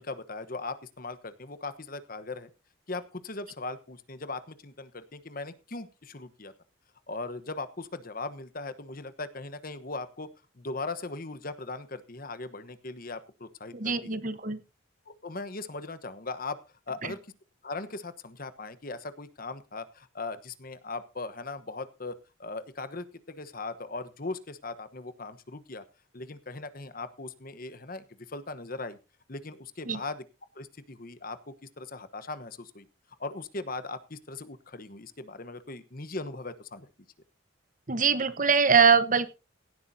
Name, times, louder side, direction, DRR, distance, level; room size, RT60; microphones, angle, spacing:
voice 1, 0.0-2.5 2.9-6.5 7.1-10.3 10.6-14.2 15.1-16.6 16.9-17.2 17.6-25.8 26.1-29.0 29.3-30.2 30.5-32.9 33.2-36.9, left 3 dB, 40° left, 12 dB, 1.1 m, -39 dB
voice 2, 13.7-14.6 17.0-17.1 29.9-30.0 37.9-39.3, right 5 dB, 40° right, 13 dB, 1.1 m, -23 dB
17.0 x 11.5 x 2.7 m, 0.29 s
head